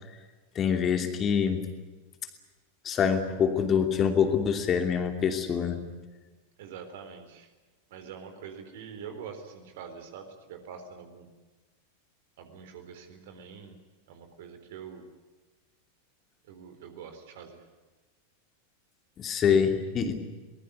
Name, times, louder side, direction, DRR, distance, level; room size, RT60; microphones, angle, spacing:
voice 1, 0.5-1.7 2.8-5.8 19.2-20.2, left 7 dB, 25° left, 6 dB, 2.8 m, -25 dB
voice 2, 6.6-7.5 7.9-11.3 12.4-13.8 14.1-15.0 16.5-17.6, right 7 dB, 55° right, 7 dB, 3.9 m, -45 dB
23.5 x 20.0 x 9.7 m, 1.3 s
figure-of-eight pair, 90°, 0 cm